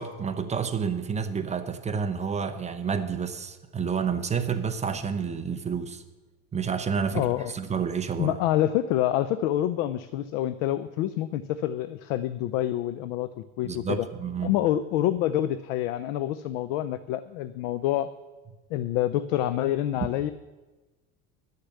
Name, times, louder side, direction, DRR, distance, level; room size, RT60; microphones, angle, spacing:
voice 1, 0.0-6.0 6.5-8.4 13.6-14.5, right 6 dB, 20° right, 8 dB, 0.7 m, -29 dB
voice 2, 7.1-7.5 8.2-14.1 14.4-18.1 18.7-20.3, left 12 dB, 85° left, 14 dB, 0.6 m, -27 dB
11.5 x 6.7 x 8.3 m, 1.2 s
cardioid pair, 140°, 37 cm